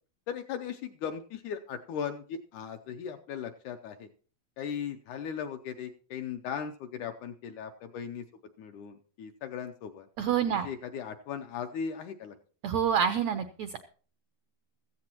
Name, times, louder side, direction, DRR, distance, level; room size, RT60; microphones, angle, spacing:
voice 1, 0.3-4.1 4.6-8.2 8.6-10.1 10.6-12.4, left 7 dB, 75° left, 6 dB, 1.9 m, -38 dB
voice 2, 10.2-10.7 12.6-13.8, right 8 dB, 80° right, 9 dB, 1.5 m, -27 dB
16.0 x 14.0 x 2.9 m, 0.40 s
omnidirectional pair, 4.0 m